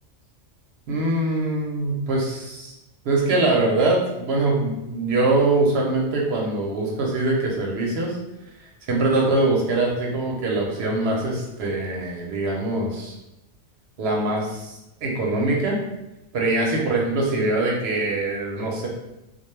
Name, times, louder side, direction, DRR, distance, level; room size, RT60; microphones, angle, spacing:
voice 1, 0.9-2.7 3.0-8.2 8.6-13.1 14.0-15.8 16.3-18.9, right 2 dB, 65° right, -1 dB, 0.8 m, -23 dB
2.2 x 2.2 x 3.0 m, 0.93 s
omnidirectional pair, 1.3 m